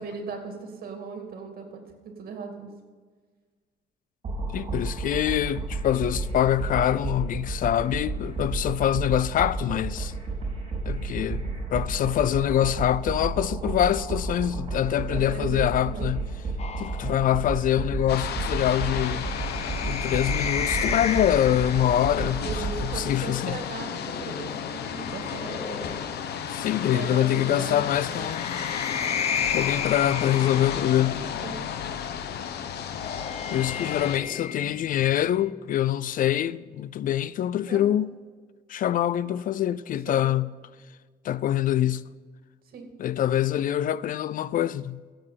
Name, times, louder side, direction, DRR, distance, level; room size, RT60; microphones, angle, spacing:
voice 1, 0.0-2.7 14.9-16.1 22.4-25.9 26.9-28.3 31.4-31.5 37.7-37.8 40.1-40.2 42.7-42.9, right 4 dB, 65° right, 2.4 m, -38 dB
sound 1, 4.2-23.1, right 3 dB, 40° right, 4.9 m, -32 dB
voice 2, 4.5-10.1 10.9-11.4 11.7-16.3 16.8-19.3 19.8-23.6 26.5-28.6 29.5-31.3 33.5-38.2 38.7-40.5 41.2-42.1 43.0-45.0, left 11 dB, 55° left, 0.4 m, -25 dB
sound 2, 16.6-22.1 23.5-26.5 27.8-31.3 32.6-35.5, left 7 dB, 40° left, 0.7 m, -34 dB
sound 3, 18.1-34.2, left 8 dB, 90° left, 0.9 m, -33 dB
15.5 x 7.8 x 5.8 m
cardioid pair, 150°, 17 cm